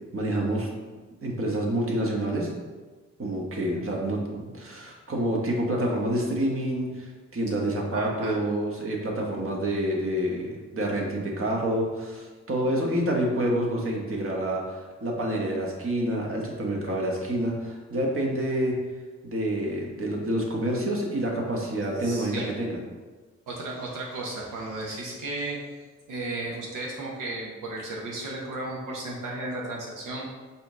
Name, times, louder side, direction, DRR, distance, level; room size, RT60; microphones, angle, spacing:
voice 1, 0.1-0.7 1.2-2.5 3.2-18.8 19.2-22.8, right 1 dB, 40° right, -1 dB, 1.2 m, -28 dB
voice 2, 7.9-8.4 22.0-22.5 23.5-25.6 26.1-30.3, right 2 dB, 75° right, -3 dB, 0.8 m, -34 dB
4.2 x 2.7 x 3.7 m, 1.3 s
hypercardioid pair, 40°, 32 cm